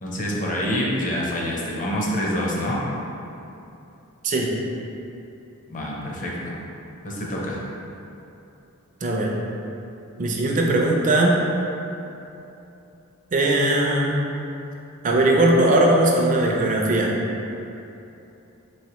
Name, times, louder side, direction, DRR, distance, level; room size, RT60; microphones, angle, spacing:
voice 1, 0.0-2.8 5.7-6.5 7.0-7.6, equal, 35° left, -4 dB, 0.6 m, -26 dB
voice 2, 9.0-9.3 10.2-11.4 13.3-14.2 15.0-17.1, right 1 dB, 35° right, -1 dB, 0.5 m, -19 dB
4.1 x 3.1 x 3.0 m, 2.8 s
head